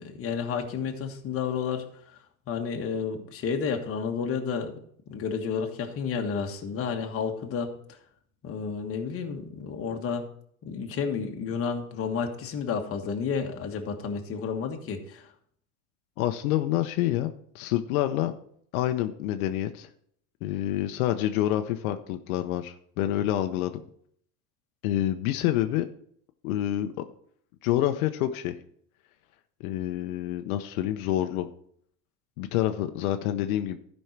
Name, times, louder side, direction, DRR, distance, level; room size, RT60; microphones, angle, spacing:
voice 1, 0.0-1.8 2.5-4.7 5.1-8.0 8.4-10.3 10.6-15.3, left 6 dB, 30° left, 3 dB, 1.4 m, -31 dB
voice 2, 16.2-18.3 18.7-19.9 20.4-23.8 24.8-25.9 26.4-26.9 27.6-28.6 29.6-31.5 32.4-33.8, left 13 dB, 80° left, 7 dB, 0.8 m, -27 dB
12.5 x 5.5 x 4.5 m, 0.65 s
supercardioid pair, 135°, 42 cm